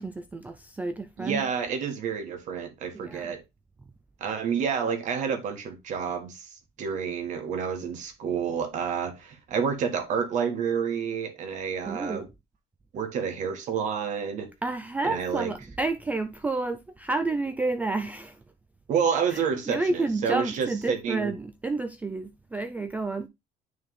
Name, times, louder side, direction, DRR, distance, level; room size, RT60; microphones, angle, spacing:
voice 1, 0.0-1.5 2.9-3.3 11.9-12.3 14.6-18.4 19.3-23.3, right 3 dB, 10° right, 0.3 m, -30 dB
voice 2, 1.2-3.4 4.2-12.3 12.9-14.5 15.0-15.5 18.9-21.3, right 7 dB, 45° right, 1.4 m, -29 dB
9.7 x 3.5 x 3.6 m
cardioid pair, 175°, 17 cm